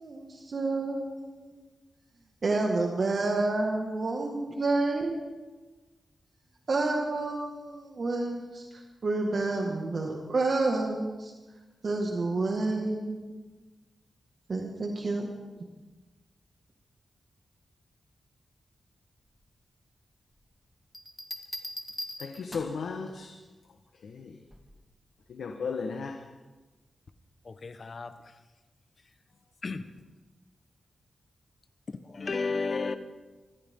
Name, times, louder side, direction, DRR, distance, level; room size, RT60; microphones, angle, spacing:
voice 1, 0.0-1.6 2.4-5.2 6.7-8.6 9.0-11.3 11.8-13.4 14.5-15.3, right 2 dB, 55° right, 2.0 m, -29 dB
Bell, 20.9-22.9 24.5-24.8, left 1 dB, 5° left, 1.7 m, -40 dB
voice 2, 22.2-23.3 24.0-24.3 25.3-26.1, left 5 dB, 90° left, 1.3 m, -35 dB
voice 3, 27.6-28.1 29.6-29.8 32.1-33.0, left 4 dB, 50° left, 1.1 m, -31 dB
25.5 x 14.5 x 3.8 m
cardioid pair, 85°, 0 cm